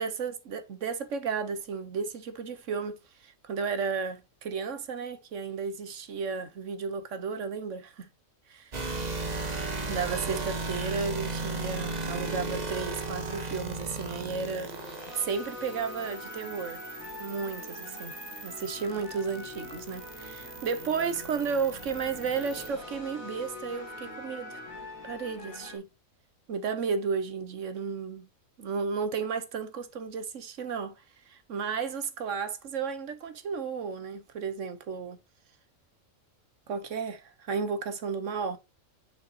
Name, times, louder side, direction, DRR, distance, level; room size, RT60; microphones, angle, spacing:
voice 1, 0.0-8.1 8.5-8.7 9.9-16.8 17.2-18.1 18.4-24.6 25.0-25.9 26.5-28.3 28.6-35.2 36.7-38.6, right 5 dB, 65° right, 1.3 m, -33 dB
sound 1, 8.7-22.7, right 3 dB, 30° right, 1.2 m, -37 dB
sound 2, 14.3-25.8, left 2 dB, 70° left, 3.2 m, -44 dB
6.9 x 6.6 x 2.8 m
omnidirectional pair, 1.5 m